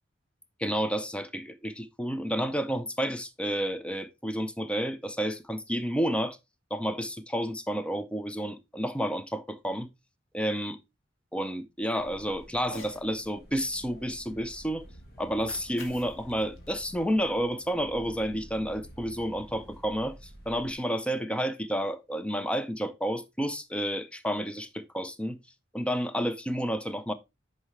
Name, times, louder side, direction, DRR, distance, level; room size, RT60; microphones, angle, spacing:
voice 1, 0.6-6.4 6.7-9.9 10.3-10.8 11.3-14.9 15.2-25.4 25.7-27.1, equal, 5° left, 0.6 m, -30 dB
sound 1, 12.0-20.7, equal, 55° left, 2.2 m, -50 dB
Cat, 12.6-13.0 15.2-17.6, left 3 dB, 75° left, 1.7 m, -49 dB
9.5 x 5.5 x 3.2 m
head